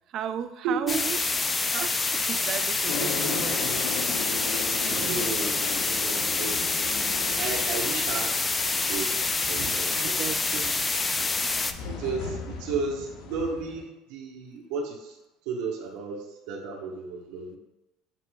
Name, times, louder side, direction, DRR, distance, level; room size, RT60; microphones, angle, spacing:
voice 1, 0.1-1.2 1.6-3.7 4.9-5.6 9.9-10.9 11.4-11.5, right 9 dB, 55° right, 11 dB, 0.3 m, -35 dB
voice 2, 0.6-1.0 4.8-6.8 7.4-8.4 8.9-9.2 9.4-10.1 10.5-10.6 11.9-15.2 15.4-17.6, right 4 dB, 70° right, -1 dB, 1.0 m, -33 dB
sound 1, 0.9-11.7, left 3 dB, 20° left, 0.3 m, -27 dB
sound 2, 2.9-13.8, left 6 dB, 65° left, 0.6 m, -38 dB
7.6 x 3.0 x 2.2 m, 1.0 s
supercardioid pair, 90°, 0 cm